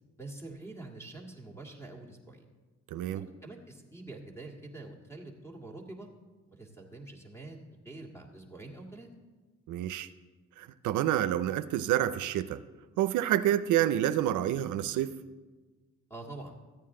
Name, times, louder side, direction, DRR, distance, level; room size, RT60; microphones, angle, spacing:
voice 1, 0.2-2.5 3.1-6.1 6.5-7.6 7.8-9.1 16.1-16.6, right 2 dB, 10° left, 1 dB, 1.8 m, -46 dB
voice 2, 2.9-3.2 9.7-10.1 10.6-12.6 13.0-15.1, right 12 dB, 80° right, 12 dB, 0.5 m, -28 dB
13.5 x 9.0 x 3.7 m, 1.3 s
cardioid pair, 90°, 30 cm